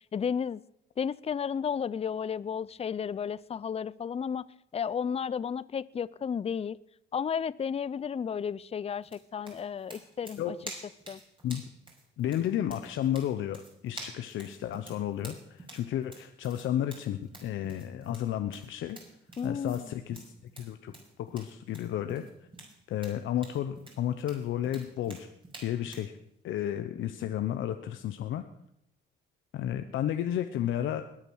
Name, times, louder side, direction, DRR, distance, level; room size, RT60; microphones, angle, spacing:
voice 1, 0.1-0.6 1.0-4.5 4.7-6.8 7.1-10.6 11.1-11.2 19.4-20.0, left 7 dB, 30° left, 20 dB, 0.5 m, -33 dB
sound 1, 9.0-26.1, right 2 dB, 25° right, 5.4 m, -49 dB
voice 2, 12.2-19.0 19.4-20.2 20.6-20.9 21.2-22.2 22.9-25.3 25.6-26.1 26.4-28.4 29.5-31.0, left 11 dB, 80° left, 8 dB, 0.9 m, -32 dB
21.0 x 8.9 x 6.3 m, 0.77 s
cardioid pair, 90°, 20 cm